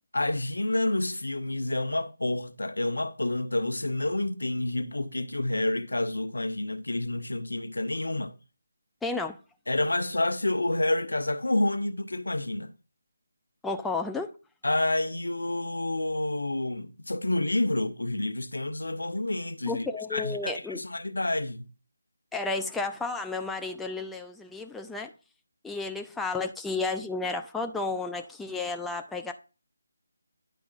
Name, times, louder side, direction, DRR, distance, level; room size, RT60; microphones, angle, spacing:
voice 1, 0.1-8.3 9.7-12.7 14.6-19.8 20.1-21.7, left 2 dB, 85° left, 0.7 m, -29 dB
voice 2, 9.0-9.4 13.6-14.3 19.7-20.8 22.3-25.1 25.6-29.3, left 3 dB, 5° left, 0.4 m, -32 dB
10.0 x 4.8 x 2.4 m
figure-of-eight pair, 160°, 0 cm